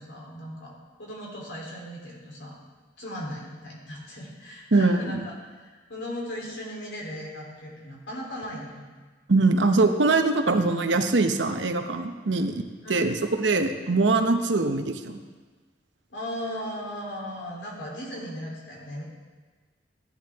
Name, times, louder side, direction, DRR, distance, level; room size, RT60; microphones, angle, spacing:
voice 1, 0.0-2.6 3.0-8.9 12.3-12.5 12.8-13.1 16.1-19.0, equal, 75° left, -3 dB, 3.3 m, -37 dB
voice 2, 4.7-5.2 9.3-12.6 12.9-15.2, right 3 dB, 75° right, 6 dB, 0.9 m, -22 dB
14.5 x 10.5 x 3.6 m, 1.4 s
head